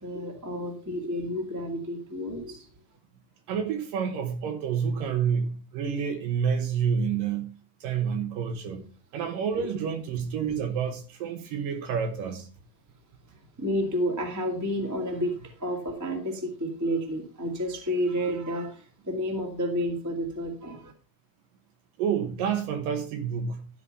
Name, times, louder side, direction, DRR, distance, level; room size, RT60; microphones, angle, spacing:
voice 1, 0.0-2.7 13.6-20.9, equal, 20° right, 1 dB, 0.4 m, -30 dB
voice 2, 3.5-7.5 7.8-12.5 22.0-23.7, right 7 dB, 65° right, 6 dB, 2.5 m, -29 dB
12.5 x 5.1 x 5.5 m, 0.38 s
omnidirectional pair, 4.8 m